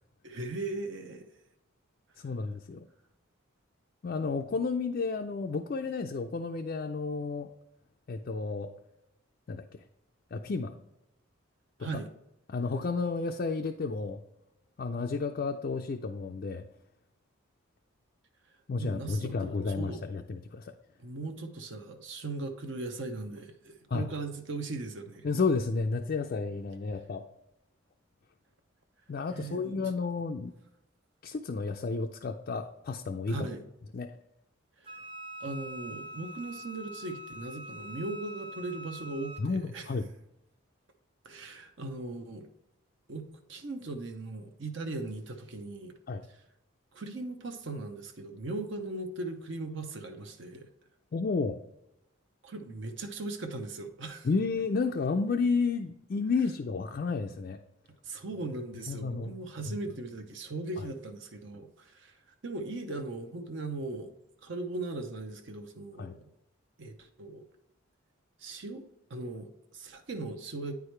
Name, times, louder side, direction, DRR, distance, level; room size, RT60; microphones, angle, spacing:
voice 1, 0.2-1.3 11.8-12.1 18.8-20.0 21.0-25.3 29.3-29.8 33.3-33.6 34.8-34.9 35.4-39.9 41.2-42.5 43.1-46.0 46.9-50.7 52.4-54.3 58.0-62.1 62.4-64.1 64.4-66.3 66.8-67.4 68.4-68.8 69.1-70.8, right 2 dB, 60° right, 6 dB, 0.6 m, -38 dB
voice 2, 2.2-2.9 4.0-7.5 8.1-8.7 9.5-9.6 10.3-10.7 12.5-14.2 14.8-16.6 18.7-20.7 23.9-24.1 25.2-27.2 29.1-30.5 31.2-33.5 33.9-34.1 39.4-40.1 46.1-46.2 51.1-51.6 54.2-57.6 58.9-59.3 59.7-59.8 60.8-60.9 66.0-66.1, left 4 dB, 45° left, 4 dB, 0.3 m, -31 dB
Wind instrument woodwind instrument, 34.8-39.5, equal, 25° right, 0.8 m, -44 dB
9.1 x 4.8 x 3.2 m, 0.86 s
head